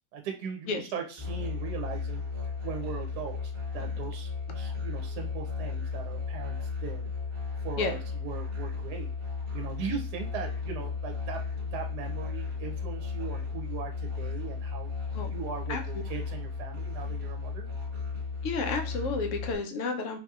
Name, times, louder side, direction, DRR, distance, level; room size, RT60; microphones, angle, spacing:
voice 1, 0.1-7.0 7.6-9.1 9.5-14.9 15.3-17.6, right 7 dB, 75° right, 3 dB, 1.1 m, -39 dB
Musical instrument, 1.2-19.5, left 5 dB, 40° right, 1.2 m, -35 dB
voice 2, 18.4-20.2, left 4 dB, 75° left, 5 dB, 0.7 m, -31 dB
3.9 x 2.7 x 2.3 m, 0.35 s
omnidirectional pair, 1.8 m